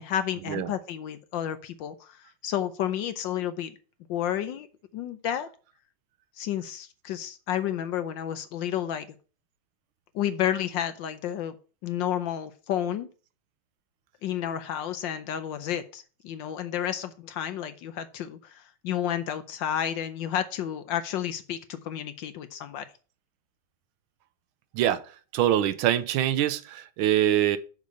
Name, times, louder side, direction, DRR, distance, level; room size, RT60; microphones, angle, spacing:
voice 1, 0.0-3.7 4.1-4.7 4.9-5.5 6.4-9.1 10.1-11.6 11.8-13.1 14.2-22.8, left 10 dB, 70° left, 1.2 m, -31 dB
voice 2, 25.3-27.6, right 11 dB, 80° right, 1.4 m, -24 dB
6.7 x 5.0 x 6.4 m
omnidirectional pair, 2.3 m